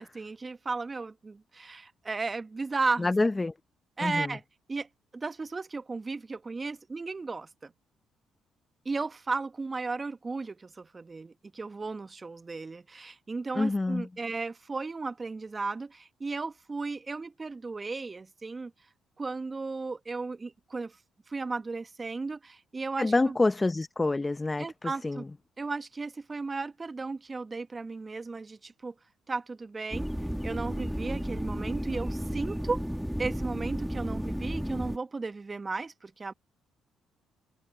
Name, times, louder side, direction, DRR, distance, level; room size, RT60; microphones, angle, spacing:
voice 1, 0.0-3.1 4.0-4.4 4.7-4.9 5.1-7.7 8.8-18.7 19.2-21.0 21.3-23.4 24.6-25.2 25.6-28.9 29.3-30.1 30.4-32.8 33.2-36.3, right 3 dB, 35° right, 1.3 m, -35 dB
voice 2, 3.0-3.5 4.0-4.3 13.5-14.1 23.0-25.2, left 2 dB, 25° left, 0.9 m, -27 dB
sound 1, 29.9-35.0, equal, ahead, 2.5 m, -33 dB
hypercardioid pair, 55°, 0 cm